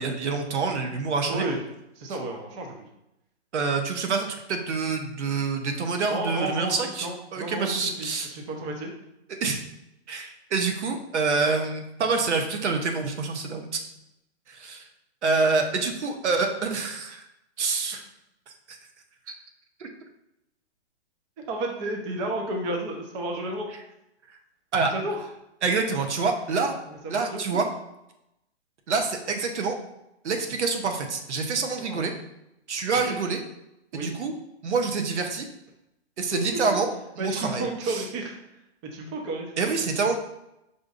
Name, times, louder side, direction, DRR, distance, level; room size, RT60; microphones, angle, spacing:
voice 1, 0.0-1.4 3.5-8.3 9.3-9.6 10.1-13.8 14.5-14.8 15.2-17.2 17.6-18.0 18.7-18.8 19.8-19.9 24.7-24.9 25.6-26.8 27.1-27.7 28.9-29.8 30.2-32.1 32.7-33.4 33.9-34.3 34.6-35.5 36.2-36.9 37.2-38.0 39.6-40.1, right 4 dB, 85° right, 4 dB, 0.7 m, -26 dB
voice 2, 1.3-1.6 2.0-2.7 6.0-8.9 21.5-23.7 24.8-25.2 26.9-27.6 31.8-32.1 33.1-33.2 33.9-34.1 36.3-36.6 37.2-38.3 38.9-39.5, right 2 dB, 25° right, 1 dB, 0.5 m, -32 dB
5.1 x 2.5 x 2.4 m, 0.87 s
hypercardioid pair, 135°, 34 cm